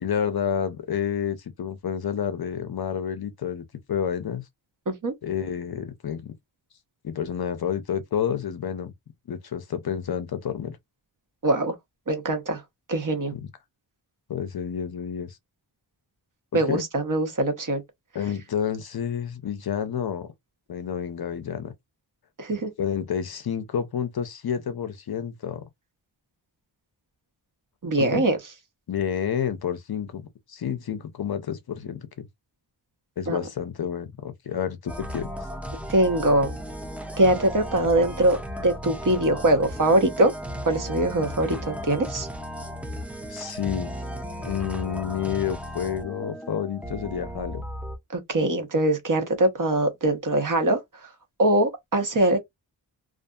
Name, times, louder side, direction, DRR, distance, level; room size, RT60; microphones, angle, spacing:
voice 1, 0.0-4.4 5.2-6.4 7.0-8.9 9.3-10.8 13.3-13.5 14.3-15.4 16.5-16.8 18.1-20.3 20.7-21.7 22.8-25.6 28.0-28.2 28.9-30.2 30.5-32.3 33.2-35.3 43.3-43.9 44.4-47.6, left 8 dB, 55° left, 0.5 m, -29 dB
voice 2, 11.4-11.7 12.1-12.6 12.9-13.3 16.5-17.8 22.4-22.7 27.8-28.4 33.3-33.4 35.9-36.6 37.2-40.3 40.7-42.3 48.1-51.1 51.4-52.4, right 1 dB, 45° right, 0.8 m, -22 dB
sound 1, 34.9-48.0, equal, 5° right, 0.3 m, -35 dB
2.5 x 2.5 x 2.2 m
wide cardioid pair, 125°, 46 cm